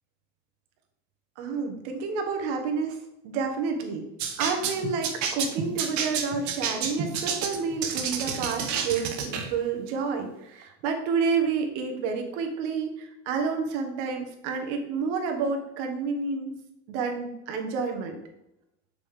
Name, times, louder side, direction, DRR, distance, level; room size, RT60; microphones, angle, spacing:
voice 1, 1.4-3.0 3.2-4.0 4.4-16.5 16.9-18.2, right 5 dB, 80° right, 4 dB, 1.5 m, -29 dB
sound 1, 4.2-9.5, right 6 dB, 55° right, 1.2 m, -30 dB
6.9 x 5.2 x 3.7 m, 0.86 s
supercardioid pair, 105°, 35 cm